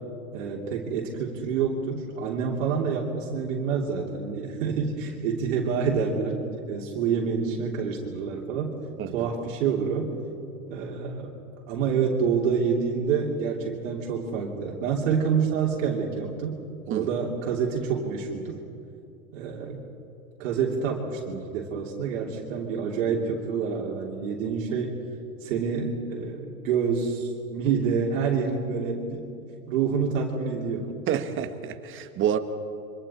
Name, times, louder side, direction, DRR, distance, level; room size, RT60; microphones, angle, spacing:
voice 1, 0.3-8.7 9.1-10.1 10.7-11.4 11.7-16.6 16.9-18.6 19.3-19.8 20.4-24.9 25.4-29.3 29.7-30.9, right 6 dB, 60° right, -2 dB, 3.1 m, -27 dB
voice 2, 31.1-32.4, right 9 dB, 30° right, 8 dB, 1.6 m, -28 dB
27.5 x 25.0 x 4.4 m, 2.6 s
hypercardioid pair, 110°, 43 cm